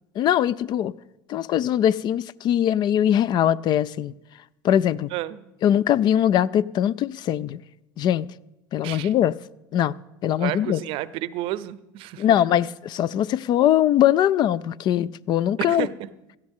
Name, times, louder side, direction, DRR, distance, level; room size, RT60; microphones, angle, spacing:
voice 1, 0.2-0.9 1.3-4.1 4.6-5.1 5.6-7.6 8.0-8.3 8.7-9.3 9.7-9.9 10.2-10.8 12.2-15.9, left 10 dB, 45° left, 0.4 m, -21 dB
voice 2, 5.1-5.5 8.8-9.1 10.4-12.6 15.7-15.9, right 14 dB, 60° right, 0.6 m, -31 dB
17.0 x 13.0 x 3.7 m
supercardioid pair, 105°, 10 cm